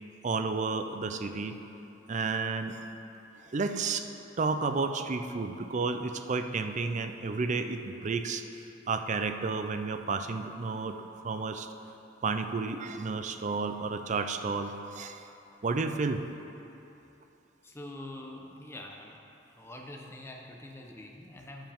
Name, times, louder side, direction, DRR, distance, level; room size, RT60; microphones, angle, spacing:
voice 1, 0.2-1.6 2.1-2.8 3.5-4.1 4.4-8.4 8.9-11.0 11.2-11.7 12.2-15.3 15.6-16.2, right 4 dB, 40° right, 8 dB, 0.5 m, -31 dB
voice 2, 17.6-19.2 19.5-21.7, left 1 dB, 15° left, 0 dB, 0.9 m, -45 dB
13.0 x 7.4 x 3.6 m, 2.9 s
head